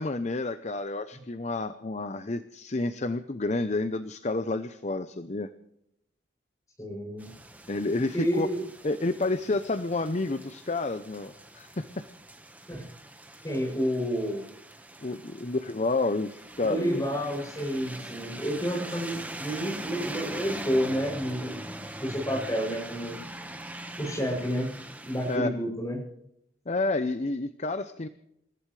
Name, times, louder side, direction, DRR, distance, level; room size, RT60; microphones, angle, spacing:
voice 1, 0.0-5.5 7.7-8.5 8.8-12.1 15.0-17.0 25.3-25.5 26.7-28.1, left 2 dB, 40° left, 11 dB, 0.7 m, -30 dB
voice 2, 6.8-7.3 8.1-8.6 12.7-12.9 13.4-14.4 16.7-23.2 24.0-26.0, equal, 20° left, -1 dB, 7.2 m, -30 dB
sound 1, 7.2-25.4, right 1 dB, 10° right, 1.3 m, -42 dB
28.5 x 15.0 x 3.3 m, 0.78 s
head